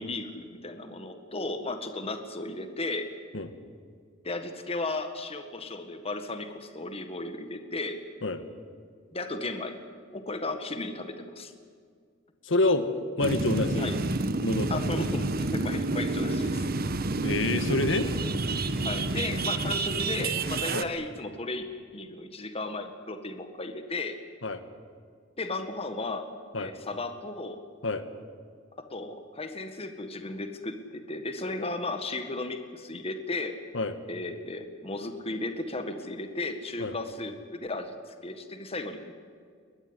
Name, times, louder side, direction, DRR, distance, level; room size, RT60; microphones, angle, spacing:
voice 1, 0.0-3.1 4.2-8.0 9.1-9.8 10.1-11.5 13.8-14.0 14.7-16.7 18.8-21.6 21.9-24.2 25.4-26.3 26.6-27.6 28.8-33.5 34.1-39.1, left 2 dB, 30° left, 7 dB, 1.7 m, -35 dB
voice 2, 12.4-13.9 14.4-15.0 17.2-18.1 20.7-20.9 24.4-24.6 26.5-26.7 27.8-28.0 33.7-33.9 36.8-36.9, left 2 dB, 75° left, 9 dB, 1.6 m, -27 dB
sound 1, 13.2-20.8, right 2 dB, 50° right, 1.1 m, -29 dB
21.0 x 20.5 x 9.8 m, 2.1 s
head